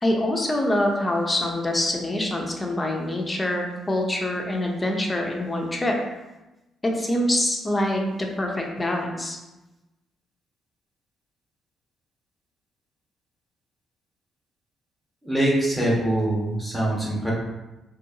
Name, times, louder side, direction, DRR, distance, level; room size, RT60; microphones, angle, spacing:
voice 1, 0.0-6.0 6.8-9.4, left 1 dB, 20° left, 1 dB, 0.7 m, -25 dB
voice 2, 15.2-17.3, right 1 dB, 5° right, -6 dB, 1.3 m, -23 dB
4.3 x 2.7 x 2.7 m, 1.0 s
cardioid pair, 90°, 0 cm